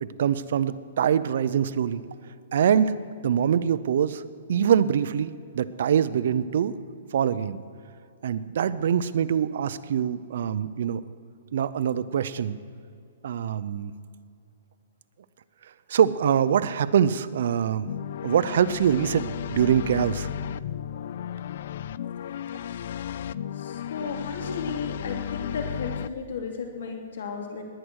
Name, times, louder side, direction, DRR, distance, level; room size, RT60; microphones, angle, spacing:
voice 1, 0.0-2.0 2.5-2.9 3.2-4.2 4.5-6.7 7.1-7.6 8.2-11.0 11.5-12.6 13.2-13.9 15.9-17.9 18.2-20.3, right 8 dB, 60° right, 15 dB, 0.6 m, -24 dB
sound 1, 17.9-26.1, left 9 dB, 50° left, 0.4 m, -34 dB
voice 2, 23.5-27.6, left 5 dB, 70° left, 3 dB, 3.1 m, -34 dB
19.0 x 10.0 x 6.4 m, 2.5 s
hypercardioid pair, 170°, 0 cm